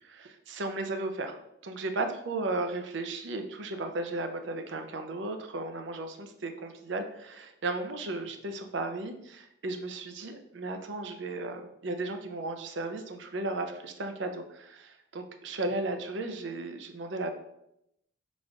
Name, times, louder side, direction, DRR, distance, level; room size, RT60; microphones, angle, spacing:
voice 1, 0.0-1.4 1.6-17.3, right 2 dB, 70° right, 6 dB, 0.5 m, -35 dB
4.1 x 2.5 x 4.5 m, 0.80 s
head